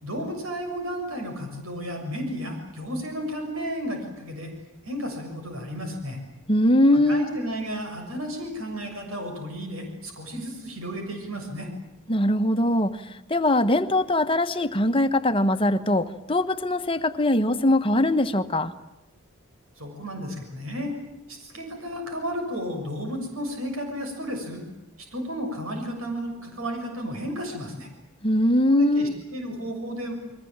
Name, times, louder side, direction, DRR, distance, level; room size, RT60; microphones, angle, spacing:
voice 1, 0.0-4.5 4.8-6.2 6.9-11.7 19.8-20.9 21.3-24.6 25.0-27.9 28.7-30.1, equal, 70° right, 4 dB, 6.9 m, -33 dB
voice 2, 6.5-7.3 12.1-18.7 28.2-29.1, left 1 dB, 25° left, 8 dB, 1.3 m, -21 dB
29.5 x 22.5 x 9.0 m, 0.90 s
head